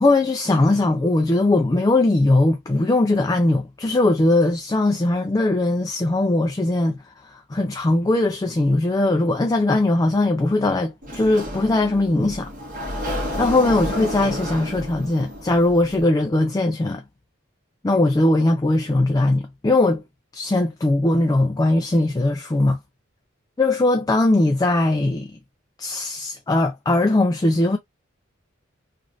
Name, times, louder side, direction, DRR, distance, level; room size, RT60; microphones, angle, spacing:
voice 1, 0.0-12.5 13.4-17.0 17.8-20.0 20.3-22.8 23.6-25.3 25.8-27.8, left 2 dB, 20° left, 0.3 m, -20 dB
Sliding door, 11.0-16.0, equal, 40° right, 1.4 m, -31 dB
3.1 x 2.5 x 2.5 m
head